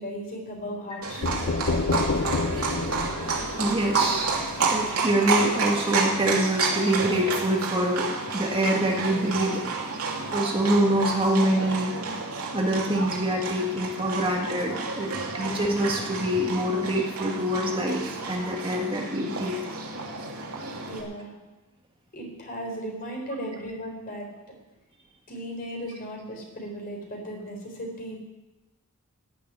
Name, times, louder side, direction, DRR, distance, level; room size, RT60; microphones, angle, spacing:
voice 1, 0.0-1.5 20.9-21.3 22.1-24.5 25.3-28.2, equal, 40° left, 0 dB, 4.0 m, -36 dB
Livestock farm animals working animals, 1.0-21.0, right 4 dB, 75° right, 2.8 m, -30 dB
sound 1, 1.2-5.0, left 3 dB, 60° left, 0.7 m, -29 dB
voice 2, 3.6-4.4 4.7-9.6 10.3-11.9 12.5-19.6, right 1 dB, 25° right, 0 dB, 1.7 m, -25 dB
14.5 x 6.7 x 9.6 m, 1.0 s
head